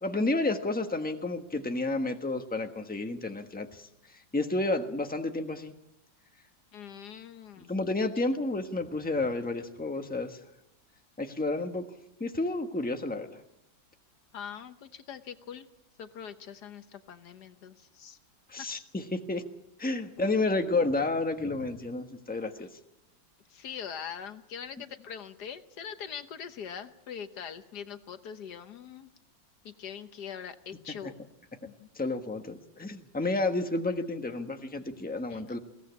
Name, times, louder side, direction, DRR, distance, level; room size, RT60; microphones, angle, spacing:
voice 1, 0.0-3.9 4.3-5.7 7.6-10.4 11.2-11.8 12.2-13.4 18.5-19.4 19.8-22.7 31.0-31.1 31.9-35.6, left 2 dB, 5° left, 5 dB, 1.1 m, -31 dB
voice 2, 6.7-7.8 14.3-15.7 16.0-18.2 18.6-18.7 20.2-20.3 22.6-22.7 23.5-29.1 29.6-31.1 31.6-31.9 35.3-35.6, left 8 dB, 60° left, 10 dB, 1.4 m, -42 dB
21.5 x 17.5 x 8.4 m, 0.84 s
omnidirectional pair, 2.1 m